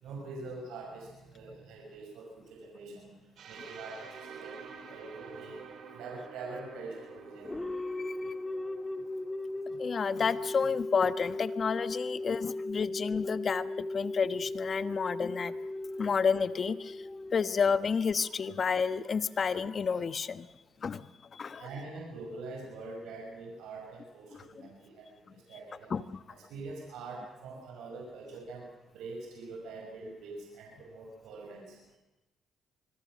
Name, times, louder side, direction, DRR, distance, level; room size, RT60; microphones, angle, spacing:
voice 1, 0.0-3.1 3.4-5.6 5.9-7.6 21.6-25.2 25.5-25.9 26.3-28.7 28.9-31.8, right 3 dB, 85° right, 0 dB, 5.9 m, -44 dB
sound 1, 3.4-11.2, right 5 dB, 70° right, 4.2 m, -50 dB
sound 2, 7.4-18.1, left 2 dB, 15° left, 1.8 m, -37 dB
voice 2, 9.7-15.5 16.0-17.0 17.3-20.5 20.8-21.1 21.3-21.6 25.9-26.2, left 6 dB, 45° left, 13 dB, 1.2 m, -30 dB
25.5 x 22.0 x 6.4 m, 1.0 s
cardioid pair, 90°, 0 cm